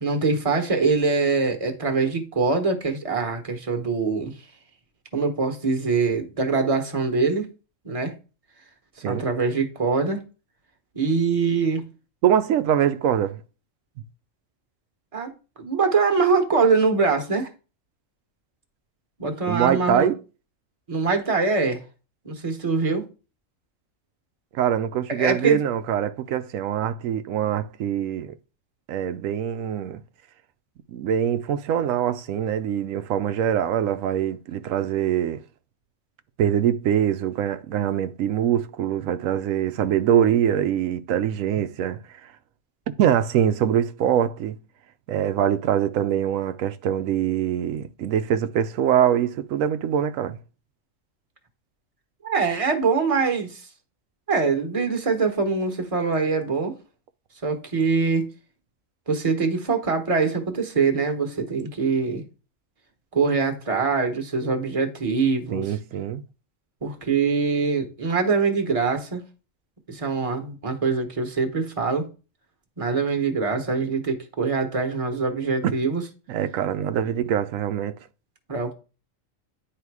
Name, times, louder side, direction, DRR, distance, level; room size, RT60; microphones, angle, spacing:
voice 1, 0.0-4.3 5.1-7.5 7.8-8.1 9.0-10.2 10.9-11.8 15.1-15.3 15.6-17.5 19.2-20.1 20.9-21.8 22.2-23.1 25.1-25.6 52.2-53.6 54.3-56.7 57.4-58.3 59.1-62.2 63.1-65.7 66.8-69.2 69.9-72.1 72.8-76.0 78.5-78.7, right 4 dB, 30° right, 1.1 m, -23 dB
voice 2, 12.2-13.4 19.5-20.2 24.5-28.3 28.9-30.0 30.9-35.4 36.4-42.3 43.0-44.6 45.1-50.4 65.5-66.2 75.6-75.7 76.3-78.0, right 9 dB, 90° right, 1.0 m, -23 dB
9.5 x 3.3 x 4.7 m
omnidirectional pair, 1.3 m